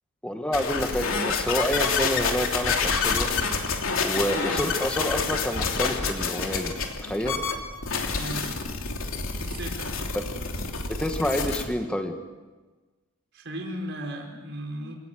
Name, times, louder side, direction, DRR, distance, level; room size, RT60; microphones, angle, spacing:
voice 1, 0.2-3.3 4.0-6.7 7.0-7.4 10.1-10.2 10.9-12.2, equal, 5° left, 4 dB, 1.8 m, -28 dB
sound 1, 0.5-11.6, left 4 dB, 70° left, 3.1 m, -28 dB
voice 2, 8.1-8.5 9.4-10.0 13.3-14.9, right 1 dB, 55° right, 0 dB, 5.1 m, -36 dB
27.5 x 18.5 x 9.3 m, 1.3 s
head